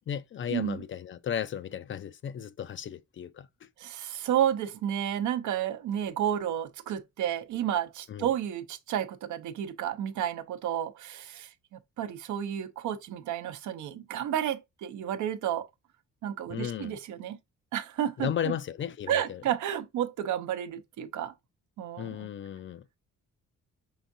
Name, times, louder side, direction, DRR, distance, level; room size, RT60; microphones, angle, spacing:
voice 1, 0.1-3.7 8.1-8.3 16.5-17.0 18.2-19.4 22.0-22.9, left 9 dB, 40° left, 0.4 m, -35 dB
voice 2, 3.8-15.7 16.2-17.4 17.7-18.3 19.1-21.3 21.8-22.3, right 10 dB, 75° right, 0.7 m, -31 dB
5.6 x 3.5 x 2.6 m
cardioid pair, 90°, 30 cm